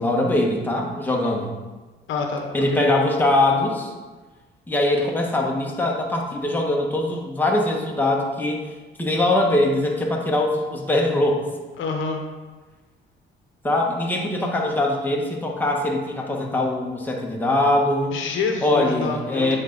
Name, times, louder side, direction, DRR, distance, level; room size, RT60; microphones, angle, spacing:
voice 1, 0.0-1.5 2.5-3.9 4.7-8.6 9.0-11.4 13.6-18.1 18.6-19.6, left 1 dB, 10° left, -1 dB, 1.2 m, -22 dB
voice 2, 2.1-2.8 11.8-12.2 18.1-19.6, left 4 dB, 80° left, 3 dB, 0.9 m, -27 dB
8.0 x 3.9 x 3.9 m, 1.3 s
cardioid pair, 90°, 20 cm